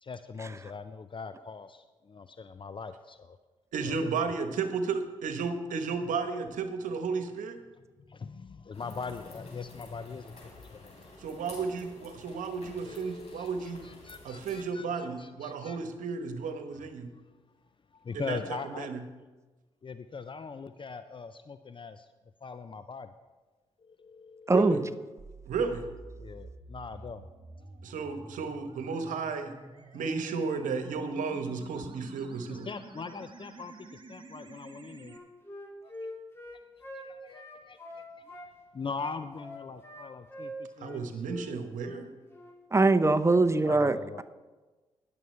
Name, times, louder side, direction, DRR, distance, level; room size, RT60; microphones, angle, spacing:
voice 1, 0.0-3.4 3.8-4.2 8.0-11.0 12.8-15.8 17.1-17.2 17.9-18.9 19.8-22.1 22.4-23.1 23.8-24.5 26.2-27.3 32.5-35.2 35.8-36.1 36.9-38.4 38.7-41.2 43.7-44.2, left 5 dB, 40° left, 11 dB, 0.5 m, -41 dB
voice 2, 3.7-7.6 11.2-13.8 14.2-17.1 18.1-19.0 24.5-24.8 25.5-25.9 27.8-29.6 29.9-32.7 40.8-42.1, right 5 dB, 75° right, 7 dB, 1.1 m, -33 dB
sound 1, 8.7-14.6, left 2 dB, 55° left, 4.1 m, -51 dB
voice 3, 24.5-24.8 42.7-44.2, right 3 dB, 20° right, 10 dB, 0.8 m, -22 dB
sound 2, 25.2-35.2, right 3 dB, 35° right, 1.1 m, -49 dB
Wind instrument woodwind instrument, 35.0-38.5 38.9-41.0 41.3-41.5 41.8-42.0 42.3-42.5, equal, 20° left, 2.6 m, -44 dB
21.0 x 7.0 x 3.3 m, 1.2 s
hypercardioid pair, 40°, 13 cm